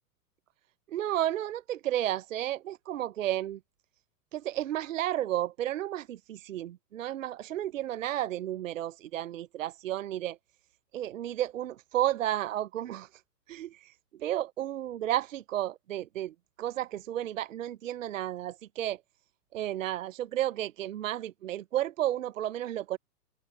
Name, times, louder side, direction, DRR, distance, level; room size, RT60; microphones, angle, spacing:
voice 1, 0.9-3.6 4.3-10.4 10.9-13.1 13.5-13.9 14.2-19.0 19.5-23.0, right 13 dB, 50° right, 0.8 m, -32 dB
figure-of-eight pair, 110°, 49 cm